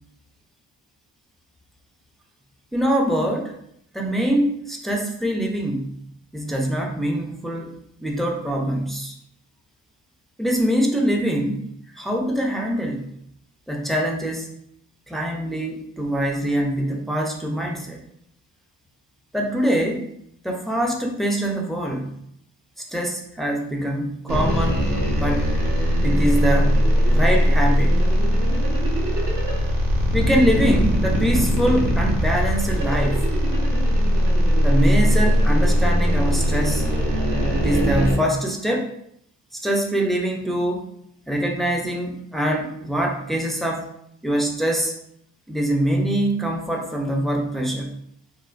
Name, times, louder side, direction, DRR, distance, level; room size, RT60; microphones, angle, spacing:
voice 1, 2.7-3.5 3.9-6.0 6.3-9.1 10.4-11.6 11.9-13.1 13.7-14.5 15.1-18.0 19.3-20.1 20.4-22.2 22.9-24.9 25.2-25.5 26.0-28.0 30.1-33.3 34.6-36.9 37.6-38.9 39.5-40.9 41.3-43.9 44.2-44.9 45.5-48.0, right 1 dB, ahead, 1 dB, 0.6 m, -24 dB
sound 1, 24.3-38.2, equal, 55° right, 1.1 m, -20 dB
4.1 x 2.0 x 2.5 m, 0.71 s
supercardioid pair, 50°, 40 cm